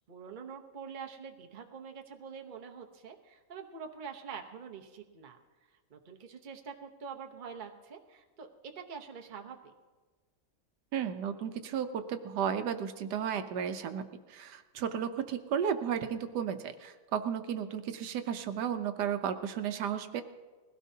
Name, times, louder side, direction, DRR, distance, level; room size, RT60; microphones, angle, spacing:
voice 1, 0.1-5.4 5.9-8.5 8.8-9.7, right 6 dB, 35° right, 3 dB, 0.9 m, -45 dB
voice 2, 10.9-20.2, right 8 dB, 75° right, 9 dB, 1.3 m, -34 dB
21.0 x 16.5 x 2.8 m, 1.3 s
omnidirectional pair, 1.8 m